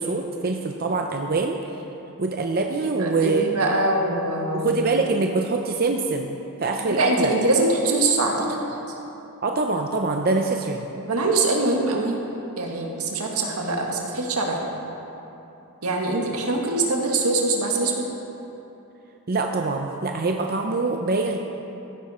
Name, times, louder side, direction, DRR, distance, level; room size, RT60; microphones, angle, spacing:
voice 1, 0.0-1.6 2.2-3.7 4.5-7.3 9.4-10.8 19.3-21.4, right 3 dB, 45° right, 3 dB, 0.6 m, -24 dB
voice 2, 3.0-4.7 7.0-8.6 11.1-12.2 12.6-14.6 15.8-18.1, right 2 dB, 85° right, 0 dB, 1.8 m, -23 dB
15.0 x 11.0 x 4.3 m, 3.0 s
head